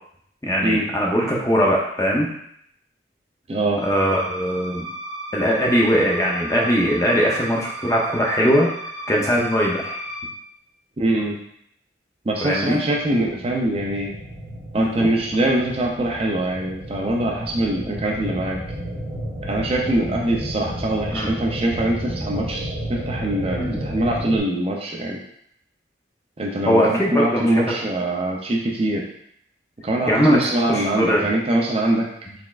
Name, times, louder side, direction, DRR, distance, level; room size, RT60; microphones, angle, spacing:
voice 1, 0.4-2.3 3.8-4.8 5.3-8.7 9.1-10.0 12.4-12.8 14.8-15.1 21.1-21.3 23.6-23.8 26.6-27.6 30.1-31.3 32.3-32.4, equal, 15° left, -2 dB, 0.6 m, -20 dB
voice 2, 3.5-3.8 11.0-11.3 12.3-14.1 14.7-18.6 19.5-25.2 26.4-29.1 29.8-32.1, right 1 dB, 30° right, 0 dB, 0.4 m, -23 dB
sound 1, 3.8-10.2, right 1 dB, ahead, 1.2 m, -35 dB
sound 2, 13.0-24.4, right 1 dB, 45° right, 1.2 m, -32 dB
4.1 x 3.3 x 2.4 m, 0.71 s
head